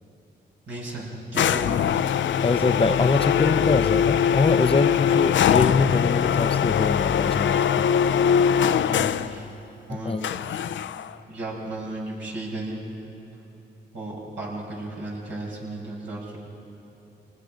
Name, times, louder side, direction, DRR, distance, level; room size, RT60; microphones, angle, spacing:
voice 1, 0.7-1.9 8.8-9.5 9.9-10.2 11.3-12.8 13.9-16.4, right 2 dB, 75° right, -4 dB, 6.5 m, -34 dB
sound 1, 1.3-9.4 10.2-11.1, left 8 dB, 75° left, 0.5 m, -22 dB
voice 2, 2.4-7.9 9.9-10.3, left 3 dB, 30° left, 10 dB, 0.6 m, -24 dB
27.5 x 19.5 x 5.2 m, 3.0 s
cardioid pair, 70°, 20 cm